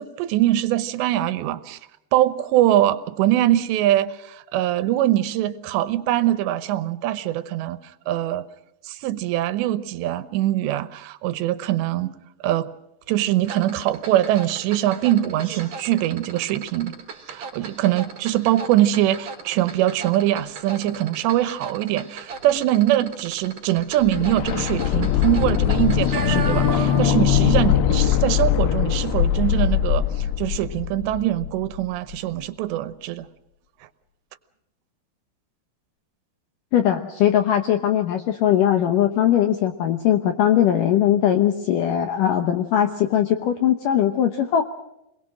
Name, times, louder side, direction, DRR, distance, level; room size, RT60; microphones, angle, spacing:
voice 1, 0.0-1.8 2.1-8.4 8.8-12.2 12.4-12.7 13.1-16.9 17.3-33.3, right 13 dB, 90° right, 14 dB, 3.2 m, -22 dB
sound 1, 13.4-27.2 27.5-27.7, right 5 dB, 40° right, 3.9 m, -35 dB
sound 2, 24.0-31.8 32.1-32.2, left 10 dB, 85° left, 3.3 m, -21 dB
voice 2, 36.7-44.6, left 10 dB, 70° left, 7 dB, 2.2 m, -20 dB
27.0 x 22.0 x 6.4 m, 0.84 s
omnidirectional pair, 4.9 m